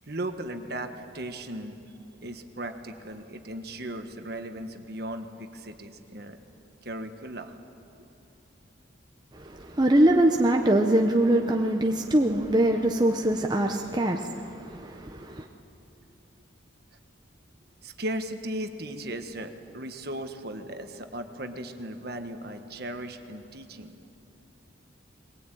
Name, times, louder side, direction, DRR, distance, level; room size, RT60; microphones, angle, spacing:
voice 1, 0.1-1.8 2.2-6.4 6.8-7.6 8.0-8.1 17.8-24.0, right 1 dB, 50° right, 7 dB, 1.5 m, -37 dB
voice 2, 9.3-15.4, right 1 dB, 20° right, 2 dB, 0.9 m, -23 dB
21.5 x 20.0 x 9.1 m, 2.9 s
head